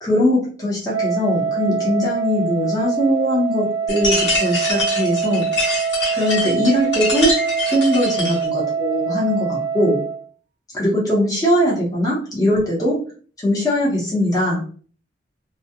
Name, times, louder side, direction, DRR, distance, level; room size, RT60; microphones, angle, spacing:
voice 1, 0.0-5.5 6.1-7.4 7.7-10.0 10.7-13.0 13.4-14.6, equal, 20° left, -5 dB, 0.9 m, -20 dB
Wind instrument woodwind instrument, 0.9-10.2, right 6 dB, 80° right, 0.5 m, -24 dB
sound 1, 3.9-8.5, left 2 dB, 75° left, 1.4 m, -24 dB
2.2 x 2.2 x 2.8 m, 0.42 s
head